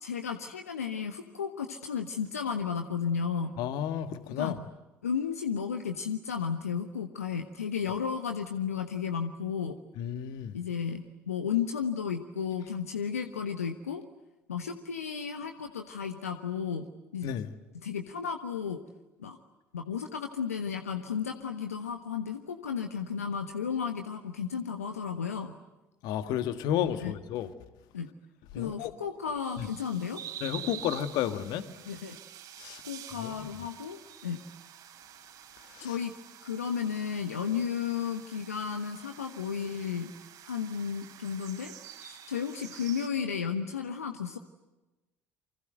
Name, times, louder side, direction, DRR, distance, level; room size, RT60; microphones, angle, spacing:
voice 1, 0.0-3.5 4.4-4.6 5.0-9.8 10.5-14.0 14.5-16.9 17.1-17.3 17.8-18.8 19.2-19.4 19.7-25.5 27.0-27.1 27.9-28.1 28.5-30.2 31.9-32.2 32.8-34.4 35.8-36.1 36.4-40.1 40.5-44.4, left 7 dB, 85° left, 6 dB, 1.2 m, -33 dB
voice 2, 3.6-4.5 10.0-10.6 17.2-17.5 26.0-27.5 28.5-28.9 29.6-29.7 30.4-31.7 32.6-32.8 33.2-33.5 35.7-36.0, left 10 dB, 60° left, 10 dB, 1.8 m, -32 dB
sound 1, 29.4-43.1, right 10 dB, 60° right, 3.9 m, -48 dB
28.0 x 25.0 x 7.9 m, 1.1 s
hypercardioid pair, 60°, 8 cm